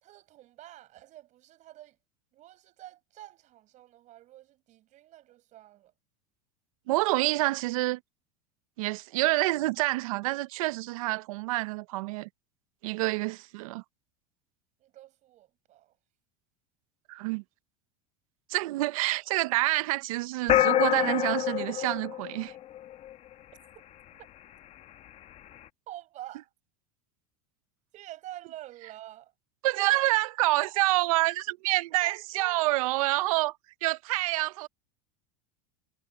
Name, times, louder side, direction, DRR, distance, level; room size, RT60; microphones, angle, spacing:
voice 1, 0.0-2.0 2.3-5.9 14.8-15.9 25.9-26.5 27.9-29.3 29.7-30.1 32.0-32.9, right 14 dB, 45° right, 5.6 m, -48 dB
voice 2, 6.9-8.0 8.8-12.3 12.8-13.8 17.1-17.4 18.5-22.5 29.6-33.5 33.8-34.7, right 19 dB, 80° right, 0.8 m, -27 dB
sound 1, 20.5-23.1, left 12 dB, 35° left, 1.2 m, -26 dB
supercardioid pair, 130°, 18 cm